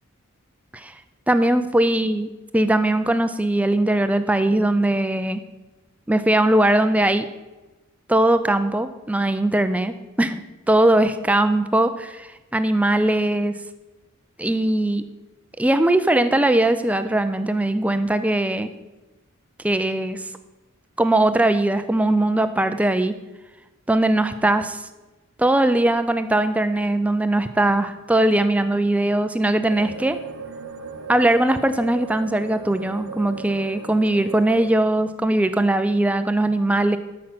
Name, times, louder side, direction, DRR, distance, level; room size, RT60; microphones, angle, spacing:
voice 1, 1.3-2.3 2.5-5.4 6.1-7.3 8.1-10.4 10.7-12.3 12.5-13.5 14.4-15.0 15.6-18.7 19.6-20.3 21.0-23.1 23.9-24.9 25.4-30.2 31.1-37.0, right 1 dB, 5° right, 10 dB, 0.4 m, -20 dB
sound 1, 29.7-34.7, right 5 dB, 80° right, 0.8 m, -37 dB
13.0 x 6.2 x 5.9 m, 1.1 s
head